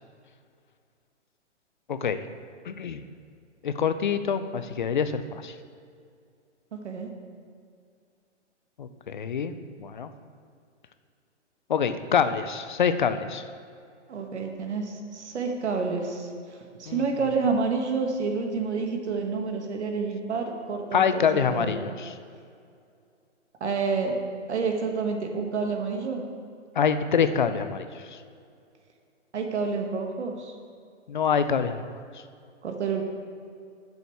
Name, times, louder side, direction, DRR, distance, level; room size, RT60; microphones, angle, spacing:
voice 1, 1.9-2.2 2.7-3.0 3.6-5.5 8.8-10.1 11.7-13.4 16.9-17.0 20.9-22.1 26.8-27.9 28.1-28.2 31.1-31.8, left 7 dB, 45° left, 11 dB, 0.4 m, -26 dB
voice 2, 6.7-7.1 14.1-16.3 16.8-21.7 23.6-24.1 24.5-26.2 29.3-30.5 32.6-33.0, right 4 dB, 65° right, 3 dB, 1.4 m, -29 dB
8.0 x 7.0 x 4.5 m, 2.3 s
hypercardioid pair, 165°, 36 cm